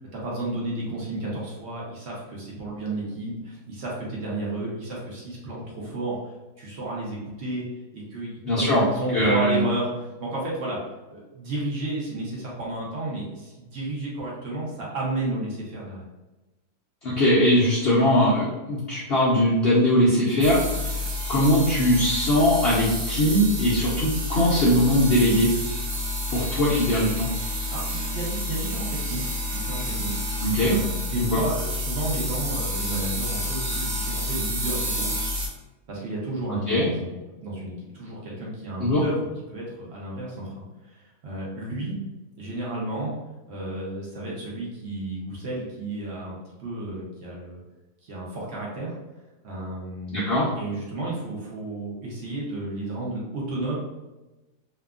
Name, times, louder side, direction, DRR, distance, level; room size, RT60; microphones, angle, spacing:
voice 1, 0.1-7.6 7.9-10.8 11.1-16.0 27.5-29.2 29.5-30.2 30.6-35.1 35.9-37.1 37.4-41.9 42.4-43.1 43.5-47.6 48.0-48.9 49.4-50.3 50.5-53.8, right 2 dB, 60° right, -5 dB, 0.7 m, -32 dB
voice 2, 8.4-8.8 9.1-9.6 17.0-21.0 21.3-25.5 26.3-27.3 30.4-30.8 31.3-31.4 36.7-36.9 38.8-39.0 50.1-50.5, equal, 70° left, -7 dB, 0.5 m, -21 dB
sound 1, 20.4-35.5, left 1 dB, 85° right, 1.3 m, -29 dB
2.8 x 2.3 x 2.3 m, 1.1 s
omnidirectional pair, 1.7 m